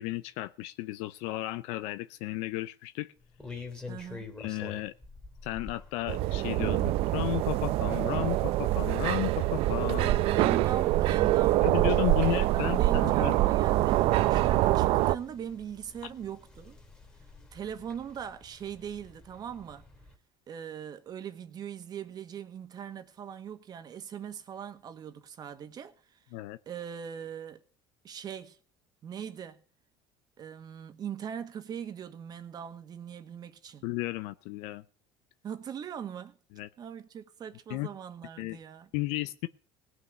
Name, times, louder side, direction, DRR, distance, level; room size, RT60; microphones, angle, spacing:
voice 1, 0.0-3.1 4.4-4.9 5.4-10.2 11.6-13.4 26.3-26.6 33.8-34.8 36.6-36.7 37.7-37.9 38.4-38.6 38.9-39.5, left 18 dB, 75° left, 0.6 m, -33 dB
sound 1, 3.2-20.2, left 3 dB, 10° left, 2.7 m, -50 dB
voice 2, 3.9-4.3 10.0-11.6 12.1-16.8 17.5-19.8 20.5-26.2 26.6-27.6 28.0-28.6 29.0-29.6 30.4-33.8 35.4-36.4 36.8-38.9, right 8 dB, 35° right, 1.6 m, -40 dB
sound 2, 6.1-15.2, right 16 dB, 60° right, 0.7 m, -25 dB
18.0 x 6.2 x 8.1 m
cardioid pair, 130°, 11 cm